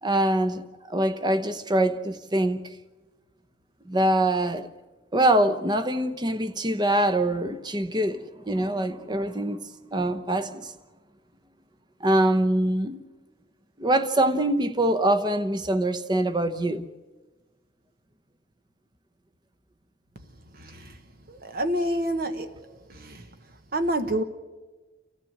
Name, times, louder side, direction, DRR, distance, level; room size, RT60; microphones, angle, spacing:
voice 1, 0.0-2.7 3.9-4.7 5.1-9.6 9.9-10.7 12.0-13.0 13.8-16.9, right 1 dB, 25° right, 0.9 m, -24 dB
voice 2, 20.6-20.9 21.3-22.5 22.9-23.3 23.7-24.2, right 1 dB, 55° right, 1.2 m, -28 dB
29.0 x 14.5 x 7.9 m
head